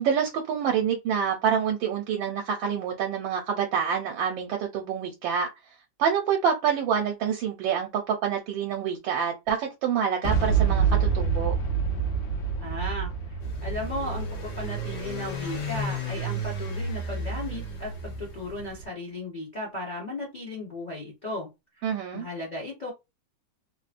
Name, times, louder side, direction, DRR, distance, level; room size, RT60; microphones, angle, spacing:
voice 1, 0.0-5.5 6.0-11.5 21.8-22.3, right 7 dB, 75° right, 1.3 m, -27 dB
Boom, 10.2-16.1, right 6 dB, 80° left, 1.4 m, -27 dB
voice 2, 12.6-21.5 21.8-21.9 22.1-22.9, left 1 dB, 40° left, 0.6 m, -36 dB
sound 1, 13.4-18.9, equal, 65° left, 1.4 m, -33 dB
3.6 x 2.1 x 2.5 m
omnidirectional pair, 2.1 m